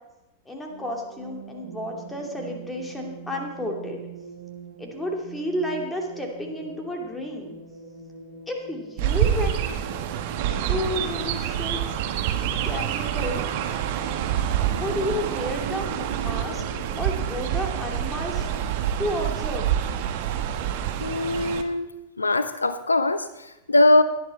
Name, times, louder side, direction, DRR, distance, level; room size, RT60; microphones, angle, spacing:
voice 1, 0.4-4.0 4.8-7.6 8.5-9.9 10.7-11.8 12.6-13.4 14.6-16.6 17.0-18.5 19.0-19.7, left 1 dB, 10° left, 1 dB, 2.7 m, -31 dB
sound 1, 0.7-19.9, right 3 dB, 75° right, 2.0 m, -43 dB
Chirp tweet, 9.0-21.6, right 10 dB, 50° right, 1.2 m, -27 dB
voice 2, 21.0-21.9 22.2-24.0, left 2 dB, 80° left, 12 dB, 0.7 m, -21 dB
17.5 x 11.0 x 4.3 m, 0.95 s
figure-of-eight pair, 90°, 0 cm